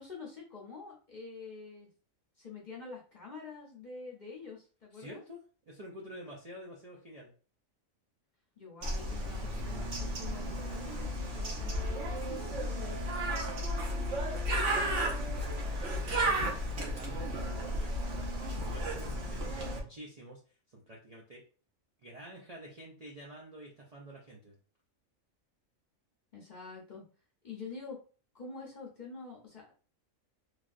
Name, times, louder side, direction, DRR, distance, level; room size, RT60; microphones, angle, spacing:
voice 1, 0.0-1.9 2.4-5.2 8.6-13.6 19.1-19.7 26.3-27.0 27.4-28.0 28.3-29.7, left 4 dB, 45° left, -3 dB, 0.6 m, -47 dB
voice 2, 4.9-7.3 14.1-17.9 18.6-20.4 20.7-21.4 22.0-24.6, right 1 dB, 50° right, -3 dB, 0.5 m, -49 dB
Bird, 8.8-19.8, equal, 65° right, 1.1 m, -33 dB
3.2 x 2.3 x 2.5 m, 0.38 s
omnidirectional pair, 1.4 m